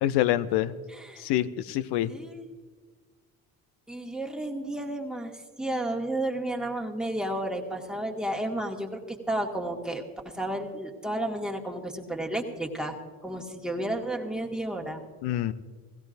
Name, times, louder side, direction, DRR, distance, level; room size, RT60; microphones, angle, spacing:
voice 1, 0.0-0.7 1.2-2.1 15.2-15.5, left 13 dB, 65° left, 15 dB, 0.7 m, -26 dB
voice 2, 0.9-1.3 2.1-2.5 3.9-5.3 5.6-13.0 13.2-15.0, right 1 dB, ahead, 0 dB, 1.9 m, -32 dB
17.0 x 16.0 x 2.6 m, 1.4 s
hypercardioid pair, 55°, 44 cm